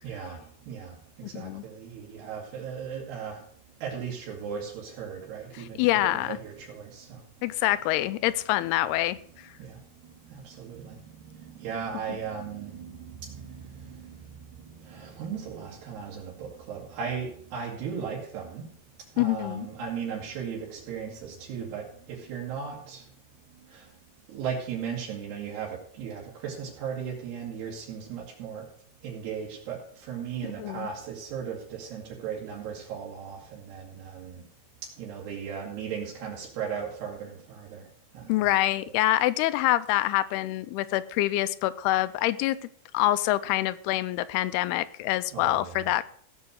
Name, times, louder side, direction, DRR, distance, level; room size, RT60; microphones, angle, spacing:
voice 1, 0.0-0.4 0.7-3.4 3.8-7.2 9.6-9.8 10.3-11.0 11.4-14.3 14.8-18.7 19.2-23.0 23.7-23.8 24.3-28.7 29.0-34.4 35.0-37.8 38.1-38.6 38.8-38.9 45.3-45.9, right 7 dB, 85° right, -4 dB, 4.2 m, -37 dB
voice 2, 5.6-6.4 7.4-9.2 19.2-19.7 30.6-30.9 38.3-42.6 42.9-46.1, left 15 dB, 85° left, 15 dB, 2.6 m, -26 dB
16.5 x 5.6 x 6.3 m, 0.62 s
omnidirectional pair, 4.6 m